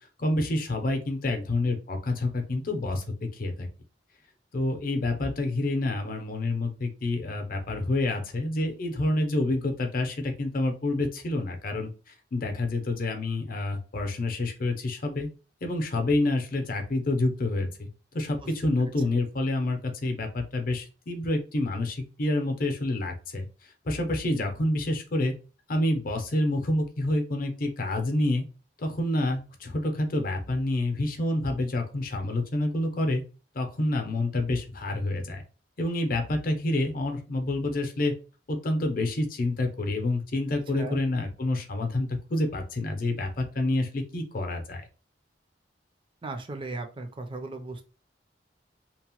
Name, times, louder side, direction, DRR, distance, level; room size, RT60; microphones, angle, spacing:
voice 1, 0.2-3.0 3.3-3.7 4.5-15.3 15.6-25.3 25.7-28.4 28.8-33.2 33.5-35.4 35.8-38.1 38.5-44.8, left 2 dB, 50° left, 4 dB, 0.6 m, -28 dB
voice 2, 46.2-47.8, right 3 dB, 30° right, 5 dB, 0.4 m, -37 dB
2.9 x 2.0 x 2.9 m, 0.34 s
head